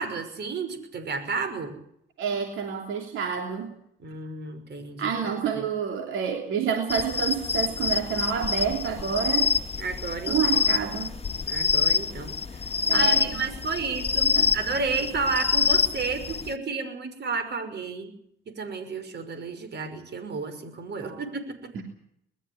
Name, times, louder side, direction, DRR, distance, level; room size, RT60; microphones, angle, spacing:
voice 1, 0.0-1.7 4.0-5.1 5.5-5.6 9.8-10.7 11.5-12.4 12.9-18.1 18.5-21.7, right 4 dB, 60° right, 8 dB, 5.7 m, -31 dB
voice 2, 2.2-3.7 5.0-9.5 10.3-11.1 12.9-13.4 14.3-14.5 21.0-21.2 21.7-21.8, right 7 dB, 85° right, 3 dB, 3.2 m, -28 dB
sound 1, 6.9-16.5, left 5 dB, 30° left, 1.4 m, -26 dB
21.5 x 13.5 x 9.7 m, 0.72 s
cardioid pair, 90°, 20 cm